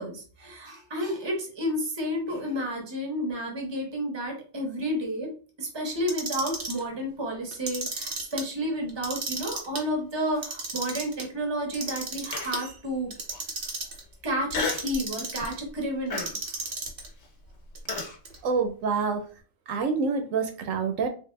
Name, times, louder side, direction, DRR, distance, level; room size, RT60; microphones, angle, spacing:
voice 1, 0.0-5.3 5.6-13.1 14.2-16.4, equal, 25° right, 1 dB, 0.8 m, -31 dB
Clock, 6.0-6.8 7.5-8.4 8.9-9.8 10.3-11.2 11.7-12.6 13.1-14.0 14.5-15.5 16.2-17.1 17.7-18.4, right 3 dB, 50° right, 0.9 m, -33 dB
Human voice, 12.3-12.8 13.3-13.4 14.5-15.0 15.4-15.7 16.1-18.2, left 4 dB, 70° left, 1.2 m, -33 dB
voice 2, 18.4-19.2 19.7-21.1, right 5 dB, 75° right, 5 dB, 1.0 m, -26 dB
3.5 x 2.5 x 3.1 m, 0.39 s
omnidirectional pair, 1.4 m